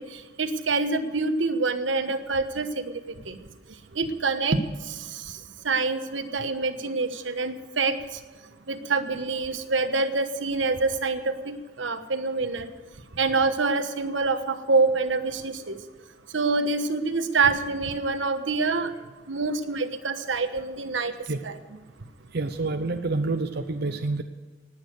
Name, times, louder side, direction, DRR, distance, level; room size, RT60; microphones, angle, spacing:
voice 1, 0.0-3.4 3.9-5.4 5.6-8.2 8.7-12.7 13.1-15.8 16.3-18.9 19.3-21.1 21.4-21.6, right 3 dB, 85° right, 9 dB, 1.2 m, -26 dB
voice 2, 22.3-24.2, right 3 dB, 60° right, 7 dB, 0.7 m, -28 dB
19.5 x 8.7 x 6.5 m, 1.4 s
head